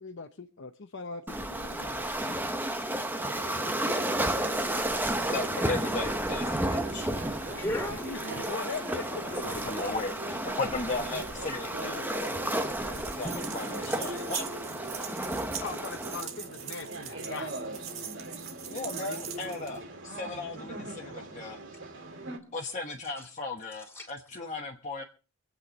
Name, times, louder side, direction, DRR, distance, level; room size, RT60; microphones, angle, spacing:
voice 1, 0.0-2.4 3.4-3.6 8.0-9.4 15.6-17.6, left 4 dB, 60° left, 6 dB, 0.9 m, -40 dB
Waves surf, 1.3-16.2, right 1 dB, 10° right, 0.9 m, -32 dB
sound 1, 3.2-22.4, right 2 dB, 60° right, 2.6 m, -42 dB
voice 2, 5.3-7.1 9.4-12.3 13.1-14.4 18.7-21.6 22.5-25.0, left 3 dB, 35° left, 0 dB, 1.3 m, -36 dB
voice 3, 7.5-8.2 9.6-9.7 15.1-15.4 16.2-16.3 23.2-23.3 23.8-24.1, equal, 10° left, 5 dB, 3.0 m, -38 dB
sound 2, 12.8-19.8, right 8 dB, 80° right, 1.8 m, -41 dB
26.0 x 8.7 x 4.1 m, 0.34 s
head